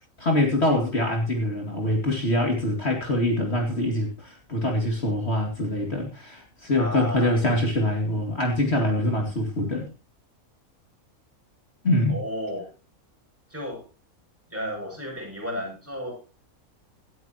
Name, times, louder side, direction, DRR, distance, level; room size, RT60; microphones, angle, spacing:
voice 1, 0.2-9.9 11.8-12.2, left 1 dB, 45° left, 1 dB, 2.6 m, -24 dB
voice 2, 6.8-7.3 12.1-12.7 13.5-13.8 14.5-16.2, equal, 10° right, -1 dB, 6.6 m, -33 dB
18.0 x 13.0 x 2.9 m, 0.32 s
omnidirectional pair, 1.5 m